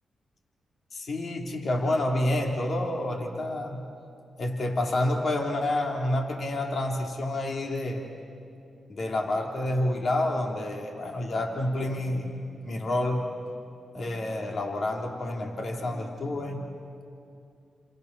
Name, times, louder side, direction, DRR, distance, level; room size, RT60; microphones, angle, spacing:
voice 1, 0.9-3.8 4.4-8.1 8.9-12.3 12.6-13.3 13.9-16.7, left 1 dB, 60° left, 1 dB, 3.5 m, -28 dB
28.5 x 27.5 x 6.9 m, 2.5 s
supercardioid pair, 50°, 0 cm